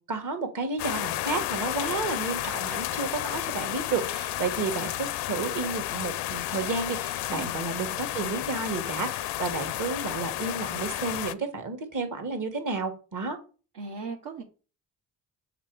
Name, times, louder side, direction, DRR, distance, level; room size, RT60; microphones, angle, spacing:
voice 1, 0.1-13.4, right 4 dB, 45° right, 6 dB, 1.5 m, -31 dB
sound 1, 0.8-11.3, left 14 dB, 65° left, 0.5 m, -32 dB
voice 2, 13.7-14.4, right 4 dB, 65° right, -2 dB, 1.1 m, -37 dB
6.6 x 3.0 x 4.7 m, 0.36 s
hypercardioid pair, 50°, 44 cm